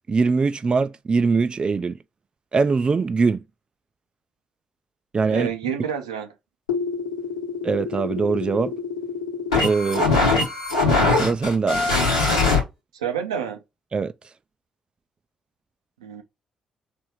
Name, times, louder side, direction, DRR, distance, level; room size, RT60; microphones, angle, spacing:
voice 1, 0.1-2.0 2.5-3.4 5.1-5.5 7.6-8.7 9.6-10.1 11.1-11.9 13.9-14.1, right 4 dB, 30° right, 0.4 m, -22 dB
voice 2, 5.3-6.3 12.9-13.6 16.0-16.2, right 8 dB, 80° right, 0.6 m, -28 dB
sound 1, 6.7-12.6, left 3 dB, 80° left, 1.1 m, -22 dB
3.3 x 3.0 x 4.2 m
figure-of-eight pair, 40°, 3 cm